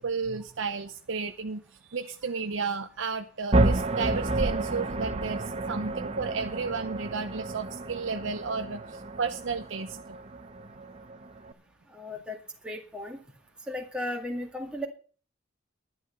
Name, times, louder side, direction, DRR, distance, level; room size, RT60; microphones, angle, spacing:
voice 1, 0.0-1.6 1.9-8.8 9.2-10.0, right 5 dB, 65° right, 6 dB, 0.7 m, -32 dB
sound 1, 3.5-11.5, right 2 dB, 30° right, 0.8 m, -30 dB
voice 2, 11.9-12.4 12.6-13.2 13.7-14.9, left 1 dB, 5° right, 0 dB, 2.0 m, -35 dB
11.5 x 10.5 x 5.5 m, 0.41 s
head